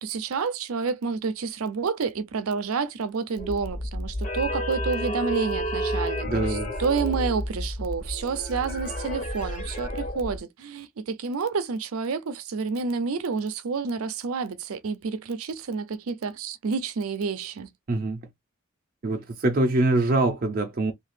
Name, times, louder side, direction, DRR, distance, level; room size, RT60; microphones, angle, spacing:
voice 1, 0.0-17.7, right 5 dB, 90° right, 0.5 m, -29 dB
sound 1, 3.4-10.4, equal, 35° left, 1.0 m, -31 dB
voice 2, 6.3-6.7 17.9-18.2 19.0-20.9, right 2 dB, 45° right, 0.5 m, -24 dB
2.8 x 2.4 x 3.1 m
head